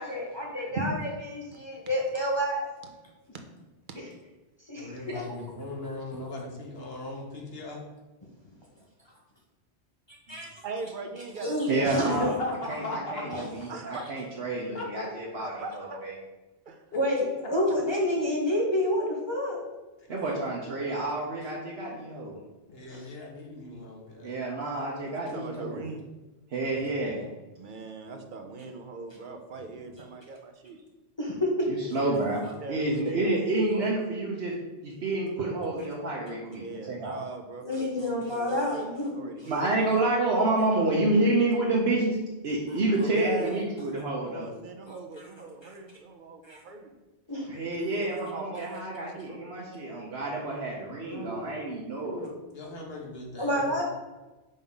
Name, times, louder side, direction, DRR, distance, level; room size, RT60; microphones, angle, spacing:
voice 1, 0.0-2.7 4.7-5.3 10.3-10.4 11.4-12.1 13.3-13.5 16.9-19.6 22.9-23.0 31.2-31.5 37.6-39.1 45.6-45.7 46.4-46.6 47.3-47.4 53.4-53.8, left 1 dB, 25° left, -3 dB, 0.9 m, -29 dB
voice 2, 4.8-7.8 12.1-13.4 14.7-14.9 22.7-24.3 26.6-26.8 51.0-51.5 52.0-53.8, left 1 dB, 60° left, -1 dB, 1.5 m, -37 dB
voice 3, 10.6-12.2 13.7-14.0 15.4-16.0 16.7-16.8 25.0-26.0 27.6-30.8 32.0-33.4 33.7-33.9 36.6-40.0 43.0-43.7 44.2-46.9 47.8-49.4, right 3 dB, 50° right, 5 dB, 0.8 m, -40 dB
voice 4, 11.7-12.3 12.7-12.8 13.1-16.1 20.1-22.3 24.2-25.8 26.5-27.2 31.7-32.4 32.7-34.5 34.8-37.2 39.5-42.2 42.4-44.5 47.5-52.2, right 2 dB, 65° right, -4 dB, 1.2 m, -29 dB
5.3 x 3.6 x 5.5 m, 1.1 s
omnidirectional pair, 1.1 m